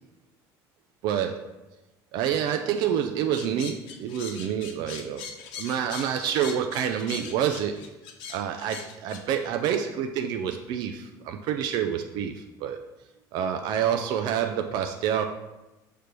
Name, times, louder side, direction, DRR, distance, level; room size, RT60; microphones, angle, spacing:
voice 1, 1.0-1.5 2.1-5.2 5.6-7.8 8.3-12.8 13.3-15.3, right 9 dB, 60° right, 5 dB, 0.5 m, -28 dB
sound 1, 3.3-9.2, left 6 dB, 80° left, 0.9 m, -40 dB
6.6 x 3.3 x 5.9 m, 1.0 s
cardioid pair, 160°, 8 cm